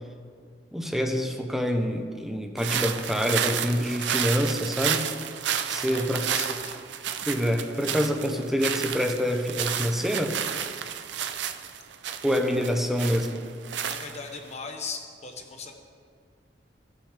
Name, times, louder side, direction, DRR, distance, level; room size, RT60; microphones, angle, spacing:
voice 1, 0.7-5.1 5.7-6.3 7.3-10.4 12.2-13.5, equal, ahead, 4 dB, 0.7 m, -26 dB
sound 1, 2.6-14.5, right 8 dB, 75° right, 0.5 m, -31 dB
voice 2, 5.9-6.8 13.8-15.7, left 4 dB, 40° left, 4 dB, 1.0 m, -39 dB
16.5 x 6.4 x 3.4 m, 2.1 s
head